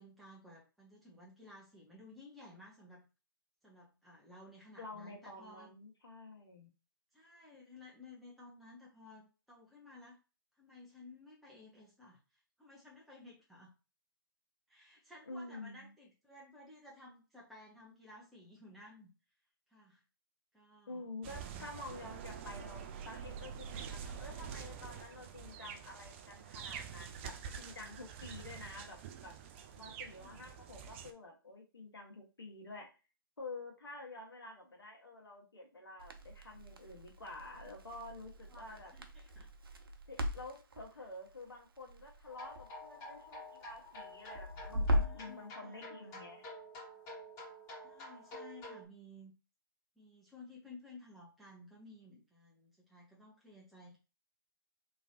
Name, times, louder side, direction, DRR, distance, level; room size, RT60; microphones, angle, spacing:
voice 1, 0.0-3.1 3.6-5.7 7.1-10.2 10.6-13.7 14.7-19.1 19.7-20.0 20.5-21.7 30.2-30.5 38.5-39.5 44.9-46.2 47.8-49.3 50.0-54.0, left 2 dB, ahead, -5 dB, 0.9 m, -56 dB
voice 2, 4.8-6.7 15.3-15.9 20.9-29.3 29.8-32.9 33.4-38.9 40.1-46.4, left 2 dB, 80° left, 1 dB, 1.3 m, -49 dB
sound 1, 21.2-31.1, right 7 dB, 30° right, 0.4 m, -47 dB
Crackle, 36.0-45.3, equal, 70° right, 0.7 m, -39 dB
sound 2, 42.3-48.8, left 1 dB, 25° left, 1.7 m, -49 dB
3.3 x 3.1 x 2.7 m, 0.31 s
figure-of-eight pair, 135°, 12 cm